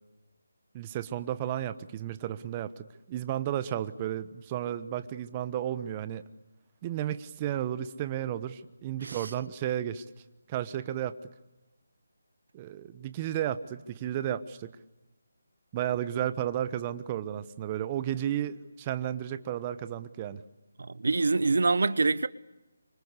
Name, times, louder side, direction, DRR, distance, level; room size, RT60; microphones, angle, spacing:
voice 1, 0.7-6.2 6.8-10.0 10.5-11.2 12.5-14.7 15.7-20.4, right 11 dB, 25° right, 1.1 m, -33 dB
voice 2, 20.8-22.3, right 3 dB, 65° right, 1.0 m, -25 dB
28.0 x 25.0 x 8.3 m
figure-of-eight pair, 160°, 0 cm